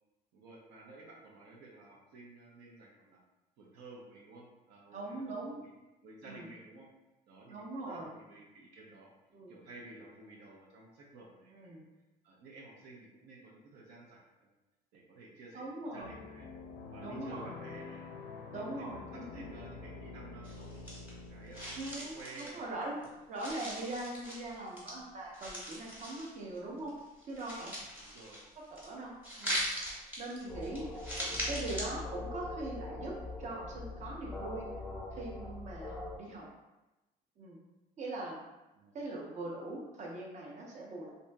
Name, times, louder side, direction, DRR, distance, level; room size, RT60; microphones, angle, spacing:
voice 1, 0.3-3.2 3.6-5.7 6.0-6.9 7.3-7.6 7.8-9.1 9.5-11.8 12.2-14.5 14.9-16.5 16.9-18.0 18.5-20.9 21.3-21.7 22.0-23.1 28.0-28.4 30.6-30.9 38.7-38.9, right 2 dB, 85° right, -3 dB, 0.6 m, -53 dB
voice 2, 4.9-5.6 6.2-6.5 7.5-8.1 9.3-9.5 11.5-11.8 15.5-16.1 17.0-17.6 18.5-19.5 21.7-22.9 23.3-26.9 27.3-27.7 28.8-29.7 30.2-30.8 31.2-33.1 33.4-34.7 35.1-36.5 37.4-37.6 38.0-38.4 38.9-41.1, right 2 dB, 45° right, -2 dB, 0.7 m, -41 dB
sound 1, 16.0-21.9, left 4 dB, 80° left, 0.5 m, -47 dB
sound 2, 20.4-21.3 21.5-23.1 23.4-24.9 25.3-26.6 26.9-28.9 29.2-31.8, equal, 10° right, 1.0 m, -40 dB
sound 3, 30.5-36.2, left 2 dB, 10° left, 0.5 m, -42 dB
2.8 x 2.6 x 2.2 m, 1.0 s
cardioid pair, 110°, 17 cm